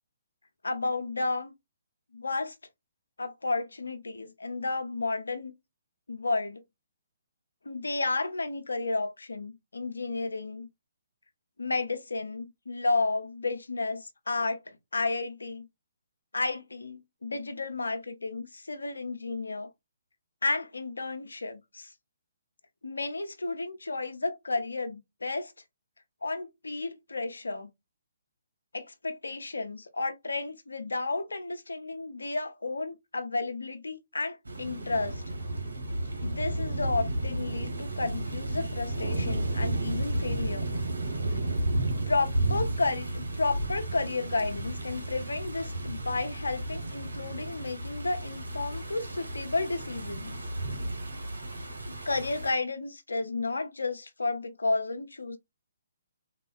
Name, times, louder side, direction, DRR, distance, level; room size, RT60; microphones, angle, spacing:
voice 1, 0.6-1.5 2.1-2.6 3.2-5.5 6.1-6.6 7.6-10.7 11.6-15.7 16.3-19.7 20.4-21.9 22.8-25.5 26.2-27.7 28.7-35.2 36.2-40.7 42.1-50.4 52.0-55.4, left 3 dB, 75° left, 0.5 m, -32 dB
sound 1, 34.4-52.5, right 1 dB, 80° right, 1.0 m, -33 dB
3.5 x 2.2 x 2.4 m
figure-of-eight pair, 135°, 0 cm